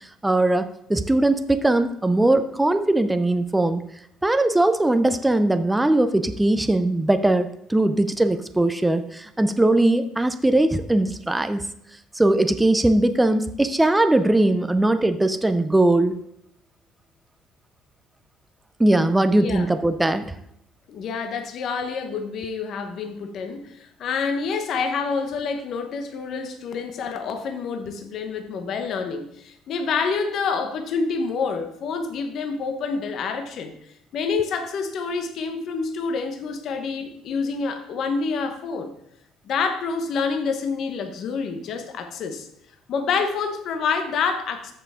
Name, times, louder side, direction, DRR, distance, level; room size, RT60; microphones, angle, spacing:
voice 1, 0.2-3.9 4.2-11.6 12.2-16.2 18.8-20.4, right 2 dB, 5° right, 9 dB, 0.4 m, -20 dB
voice 2, 20.9-33.7 34.1-38.9 39.4-42.5 42.9-44.7, left 5 dB, 40° left, 6 dB, 1.0 m, -27 dB
13.5 x 5.5 x 3.6 m, 0.74 s
cardioid pair, 180°, 0 cm